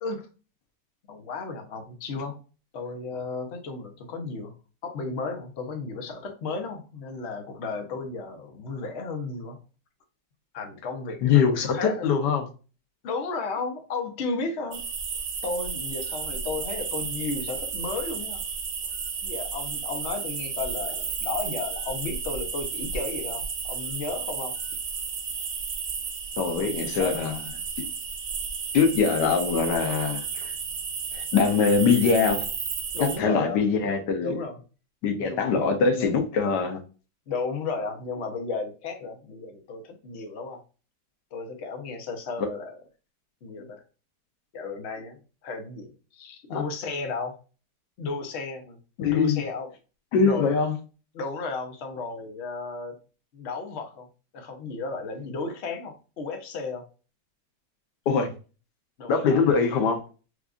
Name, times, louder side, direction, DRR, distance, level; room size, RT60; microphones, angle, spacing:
voice 1, 1.1-2.4 2.7-4.5 4.8-9.6 10.5-12.1 13.0-14.8 15.4-18.4 19.2-24.6 26.6-27.2 32.9-33.6 34.2-34.6 35.2-36.1 37.3-40.6 41.3-42.8 43.4-43.8 44.5-47.4 48.0-48.8 49.1-49.7 50.2-50.5 51.1-53.0 53.3-54.1 54.3-56.9 59.0-59.4, left 3 dB, 50° left, 1.0 m, -34 dB
voice 2, 11.2-12.5 26.4-27.4 28.7-30.5 31.1-32.5 33.0-34.4 35.0-36.8 46.5-46.6 49.0-49.4 50.1-50.7 58.1-58.3 59.1-60.0, left 5 dB, 90° left, 1.4 m, -23 dB
sound 1, 14.7-33.2, right 6 dB, 60° right, 1.1 m, -33 dB
4.7 x 2.4 x 2.4 m
omnidirectional pair, 1.8 m